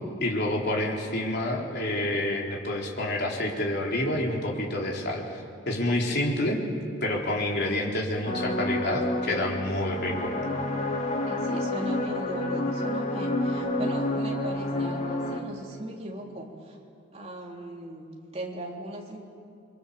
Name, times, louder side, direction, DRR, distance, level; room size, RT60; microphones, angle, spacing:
voice 1, 0.2-5.2 5.7-6.6 7.0-10.3, left 1 dB, 55° left, -1 dB, 4.0 m, -28 dB
sound 1, 8.3-15.4, left 1 dB, 35° left, 2.1 m, -29 dB
voice 2, 11.3-16.8 17.1-19.2, right 1 dB, 30° right, -1 dB, 3.4 m, -38 dB
29.0 x 23.5 x 7.1 m, 2.3 s
head